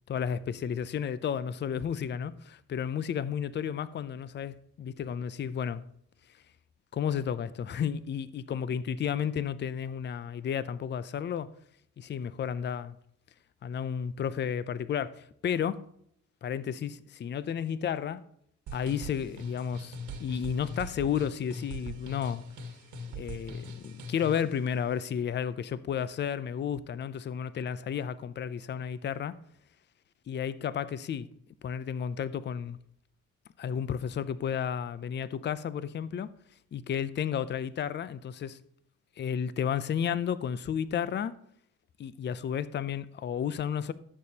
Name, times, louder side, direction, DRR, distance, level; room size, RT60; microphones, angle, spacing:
voice 1, 0.1-5.8 6.9-11.5 12.0-13.0 13.6-15.8 16.4-18.2 18.7-22.4 23.1-29.3 30.3-31.3 31.6-32.8 33.6-36.3 36.7-38.6 39.2-41.3 42.0-43.9, left 8 dB, 35° left, 0.5 m, -32 dB
sound 1, 18.7-24.5, equal, 80° right, 1.6 m, -41 dB
13.5 x 6.7 x 2.8 m
cardioid pair, 90°, 30 cm